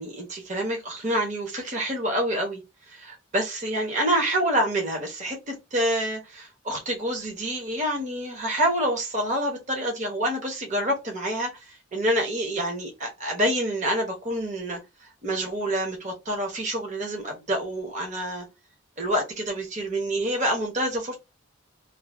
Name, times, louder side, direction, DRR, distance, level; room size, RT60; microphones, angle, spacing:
voice 1, 0.0-2.6 2.9-14.8 15.2-18.5 19.0-21.1, right 1 dB, 35° right, 1.0 m, -27 dB
2.7 x 2.6 x 2.6 m
head